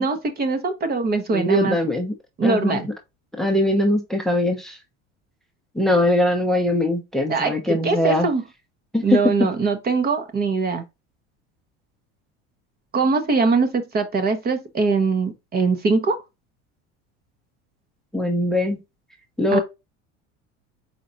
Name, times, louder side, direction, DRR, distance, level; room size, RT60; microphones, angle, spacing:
voice 1, 0.0-1.8 2.4-2.9 7.3-8.4 9.0-10.8 12.9-16.2 19.5-19.6, right 4 dB, 30° right, 0.9 m, -22 dB
voice 2, 1.3-2.1 2.4-2.9 3.4-4.8 5.7-8.3 8.9-9.2 18.1-18.8 19.4-19.6, left 1 dB, ahead, 0.8 m, -21 dB
4.4 x 3.9 x 2.5 m
supercardioid pair, 120°, 32 cm